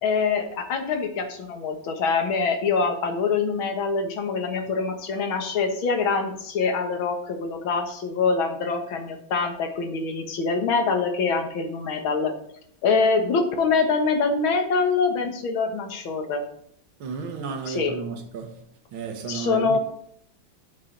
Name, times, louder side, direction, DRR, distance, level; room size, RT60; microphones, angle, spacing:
voice 1, 0.0-12.3 12.8-16.4 17.7-18.0 19.3-19.8, left 4 dB, 85° left, 2.1 m, -24 dB
voice 2, 17.0-18.6 18.9-19.8, right 5 dB, 90° right, 2.1 m, -33 dB
12.5 x 6.6 x 3.9 m
omnidirectional pair, 2.2 m